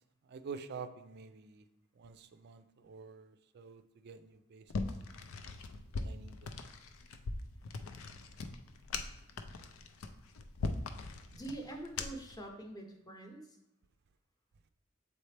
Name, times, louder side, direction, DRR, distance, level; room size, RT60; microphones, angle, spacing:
voice 1, 0.2-1.6 2.0-4.8 5.9-6.6, right 5 dB, 50° right, 0.4 m, -48 dB
sound 1, 4.7-12.4, left 3 dB, 85° left, 0.5 m, -41 dB
voice 2, 11.3-13.6, right 1 dB, 20° left, 0.8 m, -45 dB
7.2 x 4.2 x 3.3 m
head